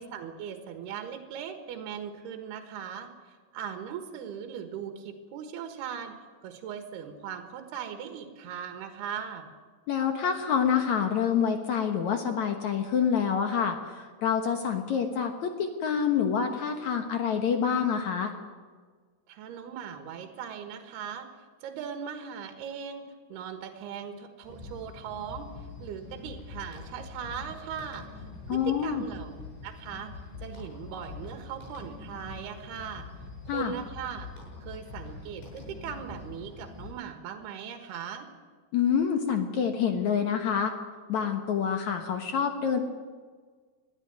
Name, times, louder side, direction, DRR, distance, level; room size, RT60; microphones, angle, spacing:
voice 1, 0.0-6.2 6.4-9.5 19.3-21.3 21.6-23.0 23.3-25.5 25.8-28.1 28.5-30.1 30.4-33.1 33.5-34.3 34.6-38.3, right 8 dB, 70° right, 6 dB, 3.5 m, -39 dB
voice 2, 9.9-18.3 28.5-29.0 33.5-33.7 38.7-40.7 41.1-42.8, left 7 dB, 65° left, 5 dB, 2.0 m, -27 dB
sound 1, 24.4-36.9, left 4 dB, 90° left, 9.9 m, -44 dB
21.0 x 13.5 x 9.3 m, 1.5 s
omnidirectional pair, 4.9 m